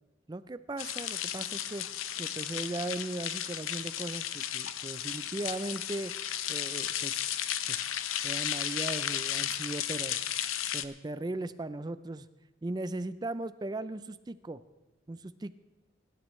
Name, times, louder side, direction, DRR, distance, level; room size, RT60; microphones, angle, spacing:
voice 1, 0.3-1.8 2.2-6.1 6.5-7.2 7.7-7.8 8.2-10.2 10.7-12.3 12.6-14.6 15.1-15.5, right 2 dB, 20° right, 14 dB, 0.4 m, -38 dB
sound 1, 0.8-10.8, left 11 dB, 85° left, 0.7 m, -34 dB
23.0 x 12.0 x 3.2 m, 1.1 s
head